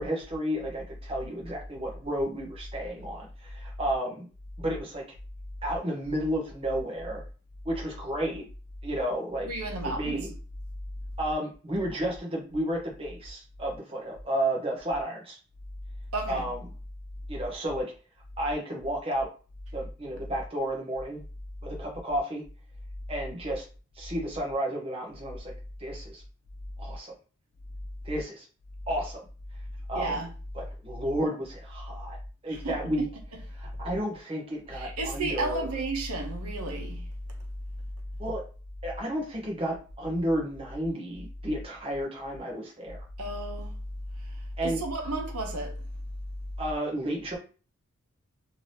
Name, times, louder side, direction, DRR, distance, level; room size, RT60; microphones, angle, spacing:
voice 1, 0.0-4.3 4.6-5.0 5.6-7.2 7.6-8.4 8.8-9.5 9.8-10.3 11.2-15.4 16.3-16.7 17.3-17.9 18.4-19.3 19.7-21.2 21.6-22.4 23.1-23.6 24.0-25.5 25.8-26.2 26.8-27.1 28.0-28.4 28.9-29.3 29.9-30.2 30.5-32.2 32.4-33.1 33.5-35.7 38.2-38.4 38.8-43.0 44.6-44.8 46.6-47.4, right 1 dB, 25° right, 0.8 m, -32 dB
voice 2, 9.4-10.3 16.1-16.4 29.9-30.3 32.5-33.1 33.3-33.4 34.7-37.0 43.2-43.7 44.6-45.8, right 2 dB, 85° right, 0.8 m, -32 dB
2.8 x 2.6 x 3.2 m
head